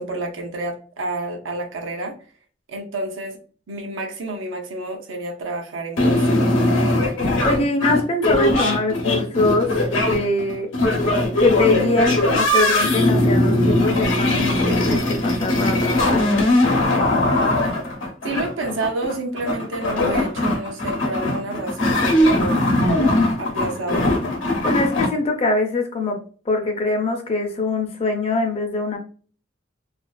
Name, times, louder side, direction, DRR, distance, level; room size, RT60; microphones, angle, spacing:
voice 1, 0.0-2.1 2.7-3.4 3.7-6.4 18.2-22.8 23.4-24.1, right 2 dB, 80° right, 2 dB, 0.6 m, -29 dB
sound 1, 6.0-25.1, left 1 dB, 85° left, 0.8 m, -20 dB
voice 2, 7.4-9.7 10.0-10.7 11.4-16.5 24.6-26.2 26.5-29.0, left 2 dB, 30° left, 3 dB, 0.5 m, -23 dB
2.5 x 2.3 x 2.2 m, 0.41 s
head